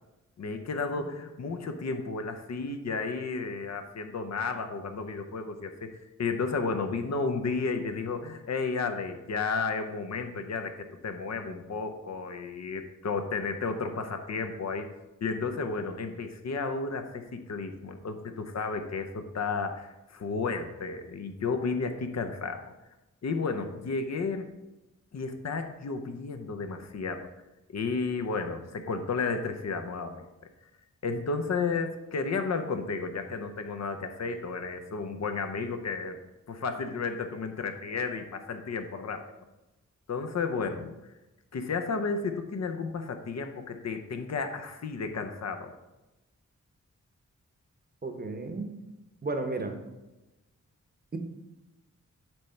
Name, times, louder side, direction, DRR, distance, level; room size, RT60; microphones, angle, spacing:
voice 1, 0.4-14.9 15.2-22.7 23.2-24.5 25.1-27.3 27.7-30.3 31.0-36.2 36.5-39.2 40.1-41.1 41.5-45.7, left 4 dB, 60° left, 6 dB, 0.7 m, -32 dB
voice 2, 48.0-48.8 49.2-49.8, right 3 dB, 30° right, 5 dB, 0.8 m, -33 dB
8.7 x 3.3 x 5.5 m, 1.0 s
wide cardioid pair, 165°, 31 cm